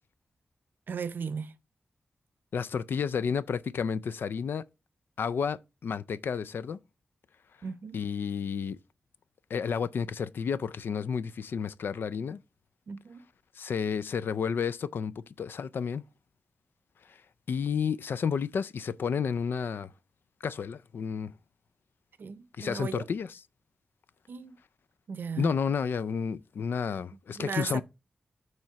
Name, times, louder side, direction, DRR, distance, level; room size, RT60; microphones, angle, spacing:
voice 1, 0.9-1.5 7.6-8.0 12.9-13.2 22.2-23.1 24.3-24.6 25.1-25.5 27.3-27.8, right 5 dB, 70° right, 0.6 m, -36 dB
voice 2, 2.5-4.6 5.2-6.8 7.9-8.8 9.5-12.4 13.6-16.0 17.5-19.9 20.4-21.3 22.6-23.3 25.4-27.8, left 6 dB, 80° left, 0.4 m, -31 dB
7.3 x 3.2 x 5.6 m
wide cardioid pair, 155°, 4 cm